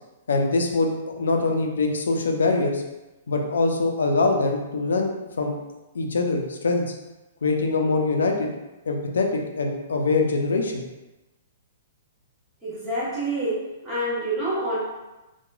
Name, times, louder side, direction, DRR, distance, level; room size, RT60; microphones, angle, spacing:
voice 1, 0.3-2.8 3.3-5.6 5.9-6.8 7.4-8.5 8.9-10.8, left 3 dB, 85° left, 3 dB, 0.4 m, -23 dB
voice 2, 12.6-14.8, right 1 dB, 15° right, -9 dB, 1.1 m, -27 dB
2.9 x 2.2 x 2.3 m, 1.0 s
hypercardioid pair, 135°, 0 cm